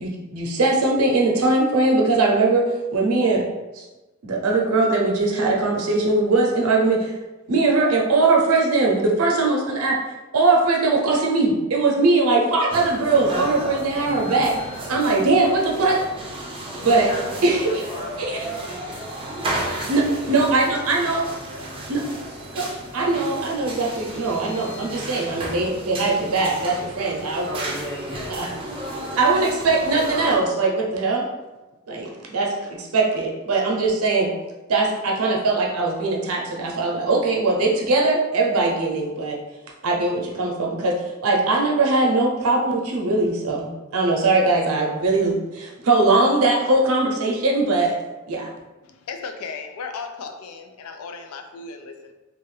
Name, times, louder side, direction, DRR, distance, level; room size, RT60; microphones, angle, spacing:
voice 1, 0.0-2.7 2.9-3.4 3.7-3.8 4.2-7.1 7.5-10.0 10.3-14.6 14.9-16.0 16.8-17.1 17.4-17.8 18.2-18.4 19.8-21.3 21.9-22.2 22.5-27.5 28.3-28.5 29.2-31.3 31.9-34.3 34.7-39.4 39.8-43.7 43.9-48.0 48.3-48.5, right 3 dB, 80° right, -1 dB, 0.6 m, -20 dB
sound 1, 12.7-30.4, right 1 dB, 25° right, 0.5 m, -33 dB
voice 2, 16.8-20.8 21.1-22.1 27.5-29.0, equal, 15° left, -6 dB, 1.0 m, -37 dB
voice 3, 48.9-52.1, left 5 dB, 80° left, 6 dB, 0.4 m, -35 dB
2.6 x 2.4 x 3.1 m, 1.1 s
head